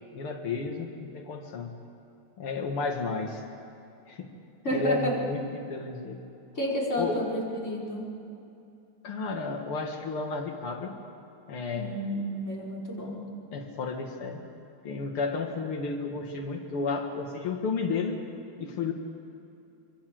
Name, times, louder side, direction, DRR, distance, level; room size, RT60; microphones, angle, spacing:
voice 1, 0.1-1.8 2.4-3.4 4.1-4.3 4.7-6.2 7.0-7.2 9.0-10.9 11.5-11.9 13.5-14.4 14.8-18.2 18.6-18.9, left 4 dB, 80° left, 1 dB, 2.7 m, -32 dB
voice 2, 4.6-5.2 6.6-8.1 11.7-13.2, equal, 30° left, -3 dB, 5.6 m, -30 dB
27.0 x 23.0 x 7.7 m, 2.6 s
omnidirectional pair, 2.4 m